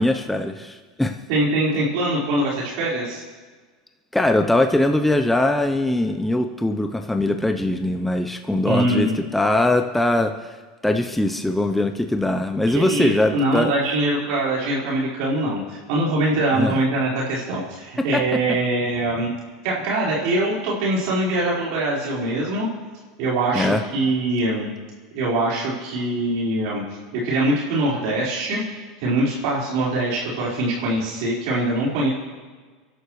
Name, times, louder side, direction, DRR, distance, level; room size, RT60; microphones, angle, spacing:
voice 1, 0.0-1.2 4.1-10.6 10.8-13.7 16.5-16.8 18.1-18.2 23.5-23.8, left 1 dB, 5° left, 6 dB, 0.7 m, -21 dB
voice 2, 1.3-3.2 8.6-9.1 12.7-19.3 19.6-22.7 23.2-24.7 25.1-26.8 27.1-28.6 29.0-32.1, right 1 dB, 65° right, -5 dB, 4.7 m, -23 dB
28.0 x 11.5 x 3.2 m, 1.4 s
hypercardioid pair, 105°, 3 cm